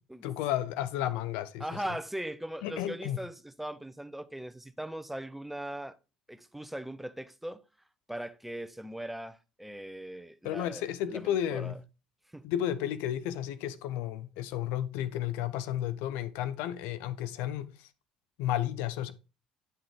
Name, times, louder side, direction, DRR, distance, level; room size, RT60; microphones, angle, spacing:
voice 1, 0.2-1.8 2.6-3.2 10.4-11.8 12.4-17.9 18.4-19.1, left 11 dB, 75° left, 0.5 m, -32 dB
voice 2, 1.6-6.0 6.3-7.6 8.1-11.8 12.3-12.4, right 1 dB, 5° right, 0.5 m, -39 dB
8.8 x 3.9 x 3.3 m
hypercardioid pair, 65°, 3 cm